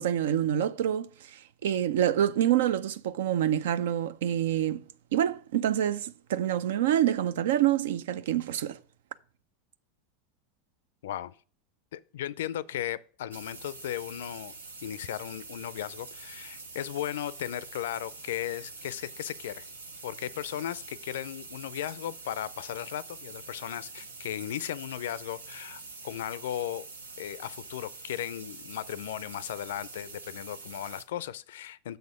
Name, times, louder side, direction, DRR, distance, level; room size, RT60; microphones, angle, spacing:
voice 1, 0.0-4.8 5.1-8.8, right 11 dB, 70° right, 0.4 m, -27 dB
voice 2, 11.0-11.3 11.9-14.5 14.8-19.7 20.0-26.9 27.2-32.0, left 12 dB, 70° left, 0.4 m, -36 dB
sound 1, 13.3-31.0, right 3 dB, 90° right, 0.8 m, -45 dB
6.6 x 4.2 x 6.3 m
hypercardioid pair, 90°, 0 cm